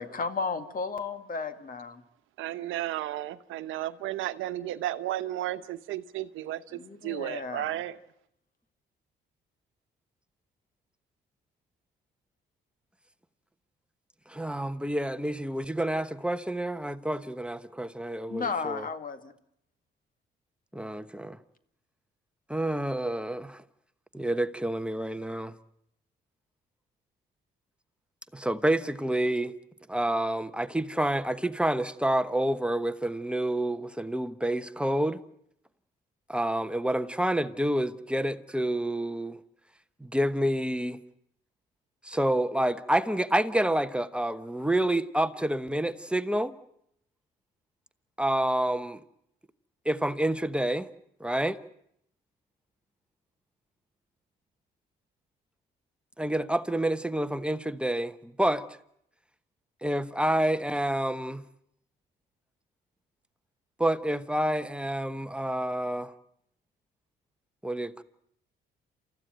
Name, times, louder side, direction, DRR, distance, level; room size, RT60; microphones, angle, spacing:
voice 1, 0.0-2.0 6.7-7.8 18.3-19.3, left 4 dB, 45° left, 2.2 m, -34 dB
voice 2, 2.4-8.0, right 14 dB, 90° right, 1.0 m, -33 dB
voice 3, 14.3-18.8 20.7-21.4 22.5-23.6 24.1-25.5 28.3-29.5 29.9-35.2 36.3-39.4 40.0-41.0 42.0-46.5 48.2-49.0 49.8-50.9 51.2-51.6 56.2-58.6 59.8-61.4 63.8-66.1 67.6-68.0, right 1 dB, 5° right, 1.1 m, -28 dB
28.5 x 14.5 x 9.1 m
cardioid pair, 90°, 20 cm